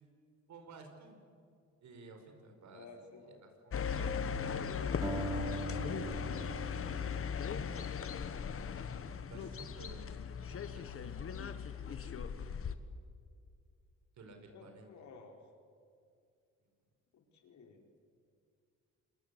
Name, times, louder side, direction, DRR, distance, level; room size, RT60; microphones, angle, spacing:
voice 1, 0.5-1.2 1.8-2.9 3.6-5.0 6.5-8.0 8.8-8.9 9.2-10.1 10.6-12.3 14.2-14.9, right 3 dB, 70° right, 5 dB, 5.1 m, -56 dB
voice 2, 2.7-3.4 14.5-15.4 17.3-17.8, left 4 dB, 70° left, 3 dB, 4.6 m, -54 dB
sound 1, 3.7-12.8, left 7 dB, 45° left, 1.5 m, -38 dB
sound 2, 5.0-8.2, right 2 dB, 10° right, 3.9 m, -42 dB
27.0 x 22.5 x 8.3 m, 2.3 s
cardioid pair, 90°, 30 cm